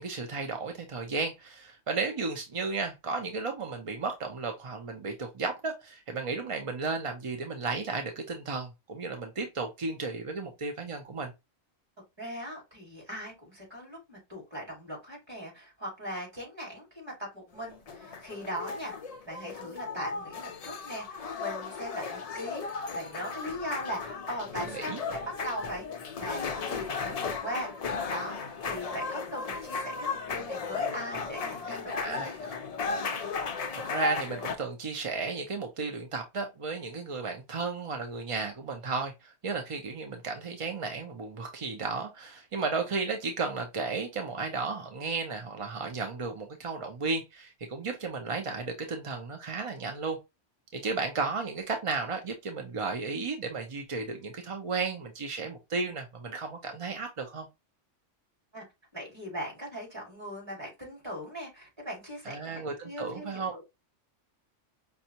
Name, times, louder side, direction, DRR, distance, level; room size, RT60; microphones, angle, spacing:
voice 1, 0.0-11.3 24.6-25.0 31.7-32.4 33.7-50.2 50.7-57.5 62.3-63.6, right 4 dB, 45° right, 0.4 m, -34 dB
voice 2, 12.2-18.9 19.3-25.9 26.2-32.3 58.5-58.6 58.9-63.7, equal, 20° right, 2.7 m, -40 dB
sound 1, 17.6-34.5, left 4 dB, 55° left, 0.4 m, -35 dB
5.3 x 2.3 x 2.8 m
omnidirectional pair, 1.2 m